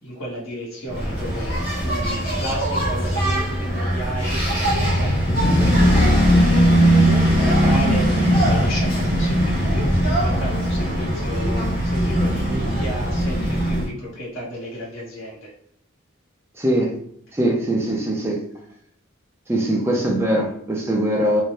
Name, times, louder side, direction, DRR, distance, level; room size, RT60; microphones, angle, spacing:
voice 1, 0.0-15.5, equal, 75° left, -6 dB, 1.3 m, -33 dB
Engine, 0.9-13.9, equal, 45° left, 0.8 m, -19 dB
voice 2, 16.6-16.9 17.3-18.4 19.5-21.4, right 1 dB, 10° right, -1 dB, 0.4 m, -21 dB
2.6 x 2.1 x 3.2 m, 0.68 s
head